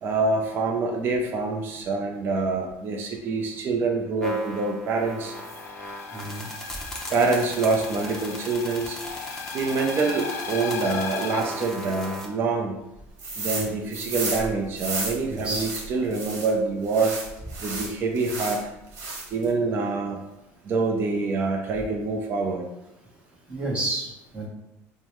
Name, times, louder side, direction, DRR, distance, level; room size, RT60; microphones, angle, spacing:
voice 1, 0.0-5.3 7.1-9.0 9.5-12.8 13.4-17.1 17.6-18.6 19.3-20.2 20.6-22.7, right 3 dB, 40° right, 1 dB, 0.5 m, -26 dB
sound 1, 4.2-12.3, left 1 dB, 10° left, 0.7 m, -38 dB
sound 2, 5.3-11.4, left 5 dB, 40° left, 0.4 m, -36 dB
voice 2, 6.1-6.5 13.5-13.8 15.3-16.1 23.5-24.5, right 2 dB, 20° right, -4 dB, 1.2 m, -32 dB
sound 3, 13.2-13.7 13.9-16.5 16.9-18.6 18.9-19.5, right 3 dB, 55° right, 1.3 m, -32 dB
5.2 x 2.1 x 3.1 m, 0.90 s
cardioid pair, 145°, 6 cm